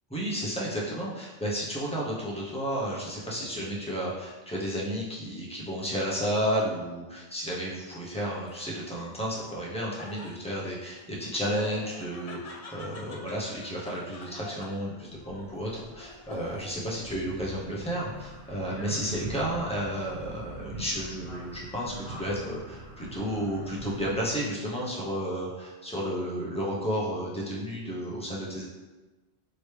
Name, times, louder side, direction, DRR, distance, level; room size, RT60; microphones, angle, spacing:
voice 1, 0.1-28.6, equal, 5° left, -6 dB, 0.8 m, -32 dB
Laughter, 8.5-16.9 17.3-18.0, left 2 dB, 50° left, 0.5 m, -48 dB
sound 1, 15.1-24.4, left 1 dB, 30° left, 1.2 m, -50 dB
sound 2, 17.0-24.2, right 1 dB, 65° right, 0.7 m, -43 dB
5.0 x 3.0 x 3.3 m, 1.2 s
omnidirectional pair, 1.1 m